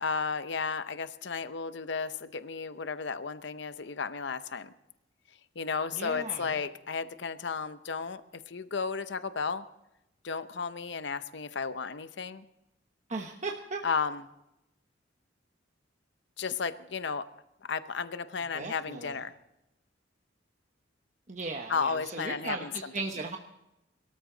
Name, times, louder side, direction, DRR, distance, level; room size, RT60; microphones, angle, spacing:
voice 1, 0.0-4.7 5.6-9.6 10.2-12.4 13.8-14.2 16.4-17.2 17.7-19.3 21.7-22.9, left 5 dB, 65° left, 12 dB, 0.7 m, -33 dB
voice 2, 5.9-6.5 13.1-13.8 18.5-19.2 21.3-23.4, right 3 dB, 40° right, 2 dB, 1.0 m, -37 dB
22.5 x 13.5 x 3.9 m, 0.88 s
head